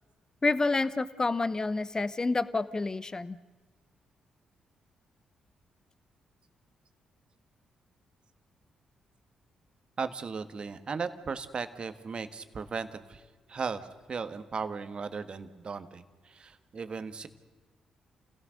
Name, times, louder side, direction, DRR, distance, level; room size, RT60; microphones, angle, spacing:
voice 1, 0.4-3.4, left 3 dB, 30° left, 15 dB, 1.0 m, -28 dB
voice 2, 10.0-13.2 13.5-17.3, right 5 dB, 50° right, 10 dB, 1.7 m, -37 dB
29.5 x 17.0 x 6.6 m, 1.3 s
hypercardioid pair, 40°, 2 cm